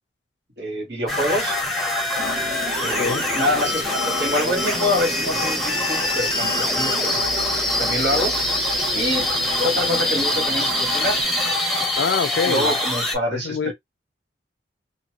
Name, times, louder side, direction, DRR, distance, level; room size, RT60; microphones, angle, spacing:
voice 1, 0.6-1.5 2.8-7.2 7.8-8.3 8.9-9.3 9.6-11.2 12.4-13.7, left 1 dB, 70° right, 1.7 m, -25 dB
sound 1, 1.1-13.1, left 1 dB, ahead, 0.7 m, -24 dB
sound 2, 2.2-11.2, right 1 dB, 35° right, 0.8 m, -34 dB
voice 2, 12.0-12.7 13.3-13.7, left 5 dB, 75° left, 0.4 m, -24 dB
2.8 x 2.6 x 2.8 m
head